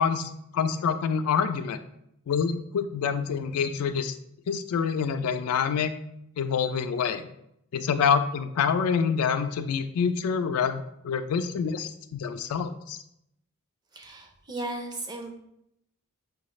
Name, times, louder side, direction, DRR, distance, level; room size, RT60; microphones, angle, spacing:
voice 1, 0.0-1.8 2.3-4.2 4.5-5.9 6.4-7.2 7.7-13.0, left 6 dB, 85° left, 10 dB, 0.3 m, -26 dB
voice 2, 13.9-15.4, right 2 dB, 20° right, 3 dB, 0.5 m, -36 dB
4.8 x 2.3 x 3.0 m, 0.77 s
head